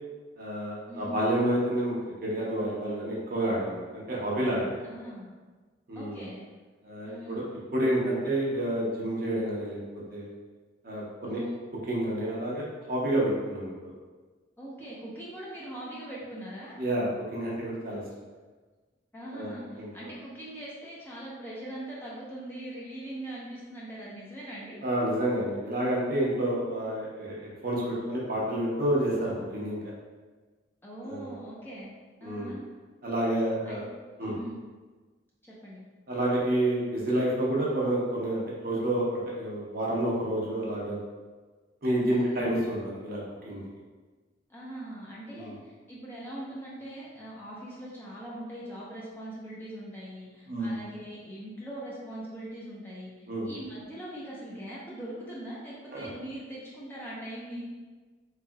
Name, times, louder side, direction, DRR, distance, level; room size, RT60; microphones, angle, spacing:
voice 1, 0.4-2.0 2.2-4.8 5.9-6.2 6.8-7.5 7.7-9.8 10.1-10.3 10.8-11.4 11.9-13.7 16.8-18.0 19.3-19.9 24.8-29.8 31.0-31.3 32.2-32.5 33.0-33.8 34.2-34.3 36.1-41.0 41.8-43.6 45.3-45.5 50.5-50.7 53.3-53.5 55.9-56.1, right 1 dB, 50° right, -5 dB, 0.8 m, -29 dB
voice 2, 0.9-1.2 4.8-5.3 5.9-6.4 7.0-7.4 11.2-11.6 14.6-16.8 19.1-24.8 27.8-28.2 30.8-31.9 32.2-32.6 33.7-33.9 34.2-34.6 35.4-35.8 42.0-42.4 44.5-45.5 45.9-53.1 53.4-57.8, right 1 dB, 10° left, -7 dB, 0.6 m, -41 dB
3.5 x 3.3 x 2.2 m, 1.4 s
head